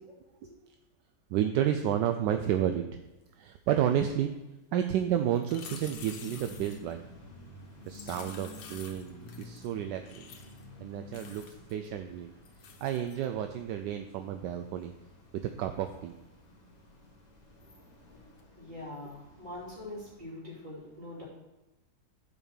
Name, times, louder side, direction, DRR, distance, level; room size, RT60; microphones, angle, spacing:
voice 1, 1.3-2.8 3.4-4.3 4.7-7.0 7.9-10.3 10.8-12.3 12.8-14.9 15.3-16.1, right 10 dB, 75° right, 7 dB, 1.2 m, -31 dB
sound 1, 5.4-6.9 7.9-9.7 10.0-10.6 11.1-11.9 12.4-13.2 18.4-18.5, left 6 dB, 90° left, 1.6 m, -49 dB
sound 2, 5.6-20.2, left 2 dB, 25° left, 1.2 m, -52 dB
voice 2, 17.6-18.2 18.5-21.2, left 1 dB, 25° right, -6 dB, 3.1 m, -44 dB
7.3 x 5.1 x 6.3 m, 1.0 s
omnidirectional pair, 2.0 m